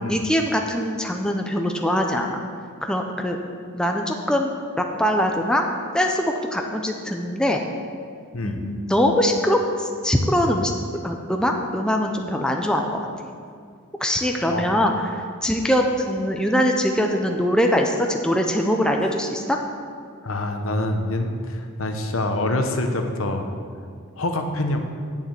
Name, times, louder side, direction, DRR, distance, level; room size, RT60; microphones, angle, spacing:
voice 1, 0.0-2.4 2.8-3.4 3.7-4.5 4.8-5.6 5.9-7.6 8.4-10.7 11.0-13.1 14.0-19.6, equal, 5° left, 2 dB, 0.6 m, -22 dB
voice 2, 20.2-23.5 24.2-24.8, left 1 dB, 60° left, 5 dB, 1.0 m, -25 dB
8.3 x 7.2 x 8.1 m, 2.2 s
head